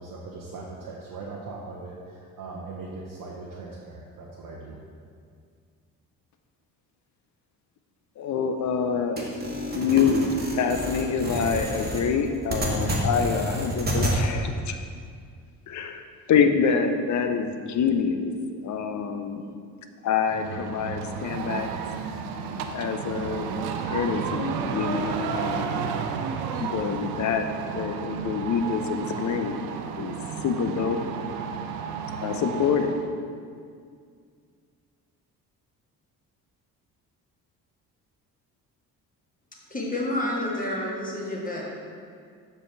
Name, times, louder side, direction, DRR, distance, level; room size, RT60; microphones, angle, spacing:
voice 1, 0.0-4.8, right 3 dB, 45° right, -4 dB, 1.0 m, -39 dB
voice 2, 8.2-9.3 9.7-10.3 10.6-14.8 15.7-16.0 16.3-19.4 20.0-21.7 22.7-26.1 26.6-27.5 27.7-29.6 30.0-30.1 30.4-31.0 32.2-33.0, left 6 dB, 40° left, 7 dB, 0.7 m, -26 dB
sound 1, 9.2-14.2, right 1 dB, 20° right, 1.4 m, -29 dB
sound 2, 20.3-33.1, right 6 dB, 70° right, 0.6 m, -32 dB
voice 3, 39.7-41.6, left 1 dB, 15° left, -4 dB, 1.5 m, -29 dB
7.4 x 5.5 x 3.3 m, 2.2 s
figure-of-eight pair, 50°, 48 cm